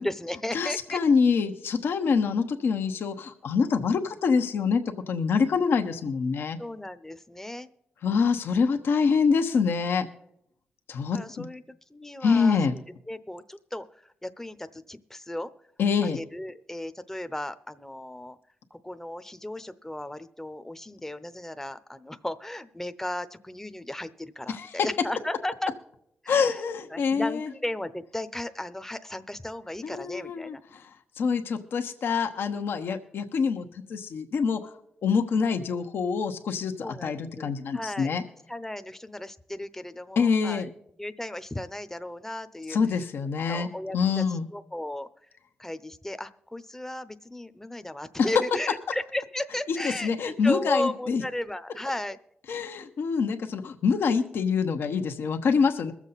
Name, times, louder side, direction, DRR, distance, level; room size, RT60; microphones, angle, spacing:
voice 1, 0.0-1.0 6.6-7.7 11.1-11.6 11.9-12.8 13.1-15.5 16.0-18.4 18.7-25.7 26.2-26.6 26.9-30.6 36.8-38.1 38.5-40.7 41.0-42.8 43.5-45.1 45.6-52.2, left 1 dB, 10° left, 11 dB, 0.8 m, -35 dB
voice 2, 0.5-6.6 8.0-10.1 10.9-11.5 12.2-12.7 15.8-16.2 24.5-24.9 26.3-27.5 29.8-30.8 31.2-33.6 33.9-34.7 35.0-38.2 40.2-40.7 42.7-43.7 43.9-44.5 48.2-48.3 49.8-51.2 52.5-55.9, left 5 dB, 75° left, 6 dB, 1.0 m, -25 dB
22.0 x 7.3 x 4.1 m, 0.75 s
supercardioid pair, 50°, 4 cm